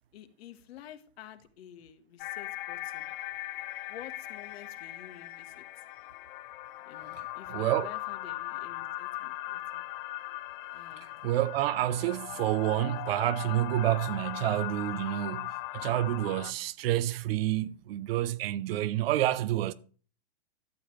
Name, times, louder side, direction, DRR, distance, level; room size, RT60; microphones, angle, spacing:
voice 1, 0.1-3.1 3.9-5.6 6.8-9.8 10.7-11.1, left 10 dB, 70° left, 1.6 m, -50 dB
sound 1, 2.2-16.5, left 16 dB, 55° left, 0.8 m, -39 dB
voice 2, 7.5-7.9 11.2-19.7, right 14 dB, 65° right, 0.8 m, -29 dB
12.5 x 7.7 x 3.2 m
hypercardioid pair, 125°, 32 cm